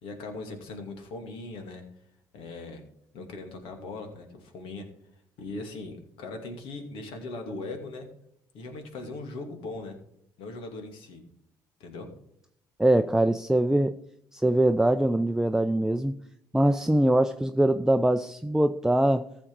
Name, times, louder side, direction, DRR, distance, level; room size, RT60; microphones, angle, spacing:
voice 1, 0.0-1.8 2.3-2.8 3.1-4.8 5.4-8.1 8.5-10.0 10.4-11.2 11.8-12.1, left 2 dB, 75° left, 2.4 m, -39 dB
voice 2, 12.8-14.0 14.3-16.1 16.5-19.3, right 1 dB, 5° right, 0.6 m, -23 dB
14.5 x 6.7 x 4.6 m
hypercardioid pair, 60°, 9 cm